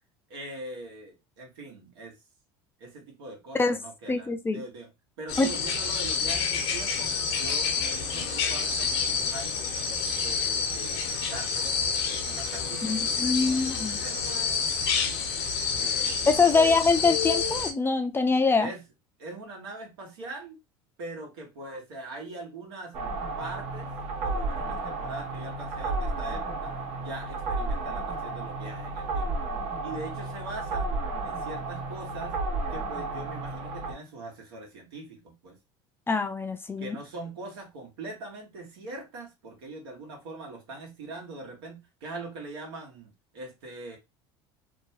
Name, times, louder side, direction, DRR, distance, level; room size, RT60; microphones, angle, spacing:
voice 1, 0.3-2.1 2.8-4.9 5.2-9.6 10.2-11.7 12.1-14.4 15.7-16.7 18.6-18.8 19.2-20.6 21.0-23.0 23.4-23.9 24.2-29.4 29.8-32.4 32.7-35.6 36.8-44.0, right 2 dB, 80° right, 1.3 m, -42 dB
voice 2, 4.1-4.6 5.4-5.5 12.8-14.0 16.3-18.7 36.1-37.0, left 4 dB, 15° left, 0.4 m, -24 dB
sound 1, 5.3-17.7, left 5 dB, 80° left, 0.8 m, -28 dB
sound 2, 22.9-33.9, right 3 dB, 60° right, 1.1 m, -32 dB
2.9 x 2.3 x 2.8 m
supercardioid pair, 95°, 13 cm